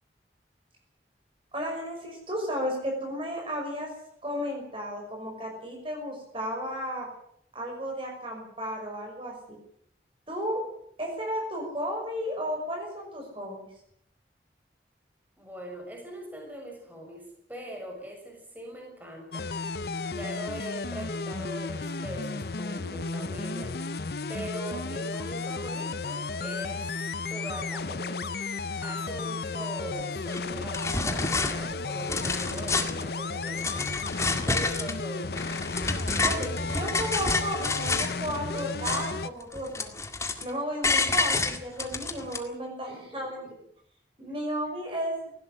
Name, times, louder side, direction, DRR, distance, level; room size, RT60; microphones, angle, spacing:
voice 1, 1.5-3.9 4.2-7.1 7.5-9.6 10.3-10.6 11.0-13.7 36.2-39.9 40.4-43.4 44.2-45.1, equal, 30° right, 1 dB, 5.9 m, -33 dB
voice 2, 15.4-19.5 20.0-23.7 24.3-28.2 28.8-33.9 34.4-35.5 42.9-43.5, equal, 10° right, 1 dB, 6.4 m, -41 dB
sound 1, 19.3-39.3, left 3 dB, 60° left, 0.8 m, -33 dB
sound 2, 30.3-30.4 30.7-31.5 31.9-33.0 33.5-35.0 35.3-38.2 38.5-39.3 39.5-40.5 40.8-42.4, left 3 dB, 15° left, 1.9 m, -29 dB
18.5 x 16.5 x 10.0 m, 0.70 s
head